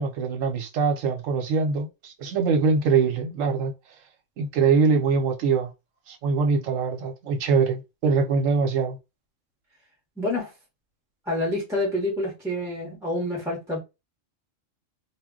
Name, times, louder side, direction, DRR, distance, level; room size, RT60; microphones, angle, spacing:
voice 1, 0.0-3.7 4.4-5.7 6.1-9.0, right 5 dB, 80° right, 1.0 m, -23 dB
voice 2, 10.2-10.5 11.3-13.8, left 1 dB, 5° right, 0.6 m, -27 dB
2.3 x 2.1 x 3.5 m
omnidirectional pair, 1.3 m